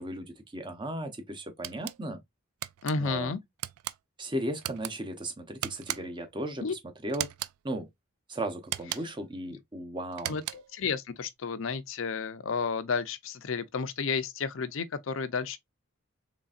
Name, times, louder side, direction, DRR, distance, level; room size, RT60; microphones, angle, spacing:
voice 1, 0.0-2.2 3.0-3.3 4.2-7.3 7.6-7.9 8.3-10.4, right 1 dB, 20° right, 0.7 m, -36 dB
sound 1, 1.6-2.0 2.6-3.0 3.6-4.0 4.6-4.9 5.6-6.2 7.1-7.6 8.6-9.2 10.1-10.8, right 14 dB, 90° right, 0.3 m, -37 dB
voice 2, 2.8-3.4 6.6-6.7 10.3-15.6, left 5 dB, 65° left, 0.5 m, -32 dB
3.9 x 3.3 x 2.4 m
head